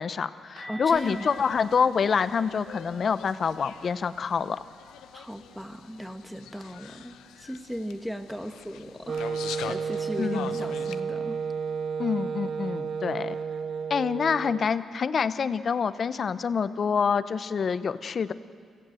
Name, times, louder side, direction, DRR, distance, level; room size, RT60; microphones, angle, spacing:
voice 1, 0.0-4.6 10.2-10.6 12.0-13.4 13.9-18.3, left 6 dB, 55° left, 14 dB, 0.8 m, -26 dB
sound 1, 0.6-6.3 6.6-6.9 7.2-7.4 10.6-10.7, equal, 80° right, 4.4 m, -49 dB
voice 2, 0.7-1.3 5.1-9.3 9.6-11.4, equal, ahead, 7 dB, 1.8 m, -37 dB
sound 2, 1.0-11.0, left 10 dB, 85° left, 0.7 m, -44 dB
Wind instrument woodwind instrument, 9.1-14.7, right 6 dB, 60° right, 0.5 m, -32 dB
25.5 x 15.5 x 7.9 m, 2.2 s
supercardioid pair, 60°, 0 cm